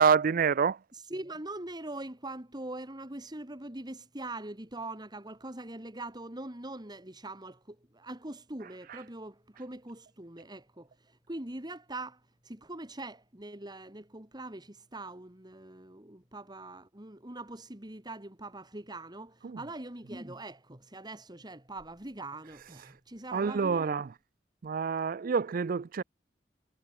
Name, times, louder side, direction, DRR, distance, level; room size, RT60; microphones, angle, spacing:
voice 1, 0.0-0.8 8.9-9.0 19.4-19.7 23.3-24.1 24.6-26.0, right 6 dB, 50° right, 0.4 m, -27 dB
voice 2, 0.9-24.0, right 2 dB, 25° right, 2.6 m, -43 dB
head